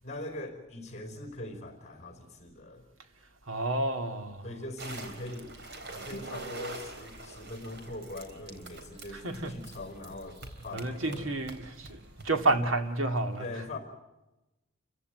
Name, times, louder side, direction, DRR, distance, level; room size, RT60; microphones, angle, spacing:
voice 1, 0.0-2.8 4.4-11.3 13.4-13.8, left 1 dB, 35° left, 4.8 m, -42 dB
voice 2, 3.5-4.4 9.2-9.5 10.7-13.5, right 2 dB, 70° right, 2.2 m, -30 dB
sound 1, 4.8-12.5, right 2 dB, 55° right, 3.8 m, -45 dB
29.0 x 16.0 x 9.5 m
head